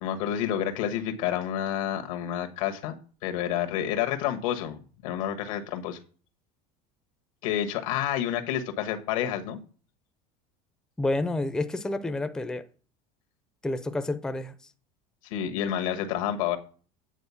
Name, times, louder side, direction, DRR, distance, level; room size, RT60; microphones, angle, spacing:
voice 1, 0.0-2.9 3.2-6.0 7.4-9.6 15.3-16.6, left 10 dB, 90° left, 1.4 m, -29 dB
voice 2, 11.0-12.7 13.6-14.5, left 2 dB, 5° left, 0.4 m, -29 dB
9.1 x 4.1 x 7.0 m
cardioid pair, 155°, 17 cm